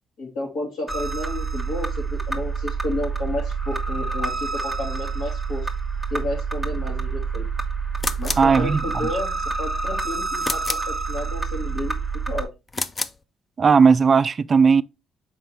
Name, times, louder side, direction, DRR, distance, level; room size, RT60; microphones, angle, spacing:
voice 1, 0.2-5.6 6.1-7.4 8.2-11.9 12.3-12.5, left 2 dB, 75° left, 3.2 m, -31 dB
sound 1, 0.9-12.4, right 4 dB, 5° right, 1.3 m, -27 dB
sound 2, 8.0-8.5 10.4-10.9 12.7-13.2, left 3 dB, 30° left, 0.5 m, -29 dB
voice 2, 8.4-9.1 13.6-14.8, right 5 dB, 40° right, 0.3 m, -17 dB
5.9 x 4.6 x 3.4 m
cardioid pair, 90°, 0 cm